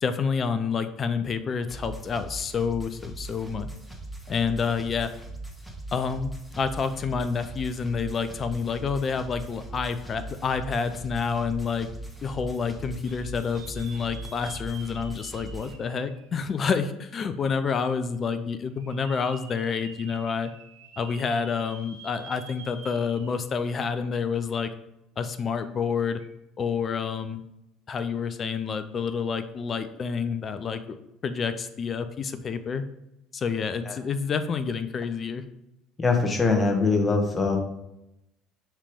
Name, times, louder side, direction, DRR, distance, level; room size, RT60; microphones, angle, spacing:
voice 1, 0.0-3.7 4.3-5.1 5.9-11.9 12.2-20.5 21.0-24.7 25.2-26.2 26.6-27.4 27.9-31.0 31.2-32.8 33.3-35.4, left 5 dB, 40° left, 11 dB, 0.6 m, -28 dB
sound 1, 1.7-15.7, right 2 dB, ahead, 1.4 m, -40 dB
sound 2, 13.1-17.0 17.5-17.6 18.7-23.7 24.0-24.1 26.1-26.3, right 5 dB, 80° right, 1.1 m, -48 dB
voice 2, 36.0-37.6, left 3 dB, 20° left, 2 dB, 1.5 m, -22 dB
7.3 x 3.4 x 5.1 m, 0.88 s
hypercardioid pair, 65°, 0 cm